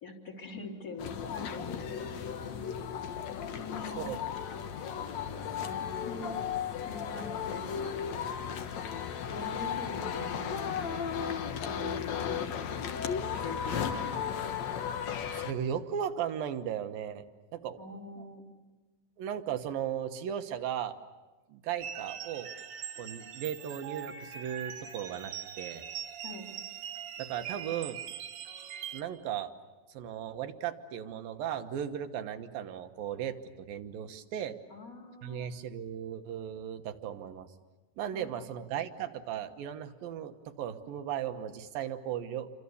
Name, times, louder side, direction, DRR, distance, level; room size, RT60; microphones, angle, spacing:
voice 1, 0.0-2.2 3.4-4.1 5.6-6.3 6.9-7.9 9.2-12.3 13.4-14.4 17.8-18.5 26.2-26.5 34.7-35.5 38.1-38.5, left 3 dB, 25° left, 2 dB, 3.6 m, -43 dB
sound 1, 1.0-15.5, left 7 dB, 60° left, 2.2 m, -35 dB
voice 2, 15.3-17.2 17.5-17.8 18.2-18.3 19.2-21.0 21.5-22.5 23.0-25.8 27.2-28.0 28.9-29.5 29.9-34.6 35.2-37.5 38.0-42.5, right 9 dB, 75° right, 8 dB, 3.0 m, -36 dB
sound 2, 21.8-29.0, right 9 dB, 60° right, 2.7 m, -42 dB
29.0 x 25.5 x 7.0 m, 1.2 s
omnidirectional pair, 4.2 m